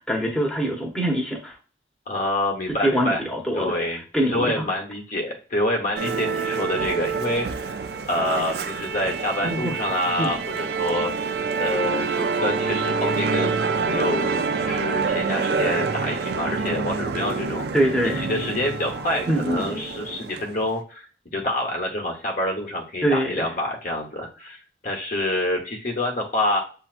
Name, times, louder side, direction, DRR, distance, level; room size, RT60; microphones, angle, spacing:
voice 1, 0.0-1.5 2.8-3.7 4.1-4.6 9.4-9.8 10.2-10.3 17.7-18.3 19.3-19.8 23.0-23.5, right 1 dB, 5° left, -2 dB, 1.0 m, -24 dB
voice 2, 2.1-3.3 3.5-7.7 8.1-11.1 11.6-21.1 21.3-24.6 24.8-26.6, left 1 dB, 45° left, 1 dB, 1.1 m, -27 dB
Musical instrument, 6.0-20.6, right 5 dB, 60° right, 0.5 m, -27 dB
7.4 x 2.8 x 2.5 m, 0.38 s
head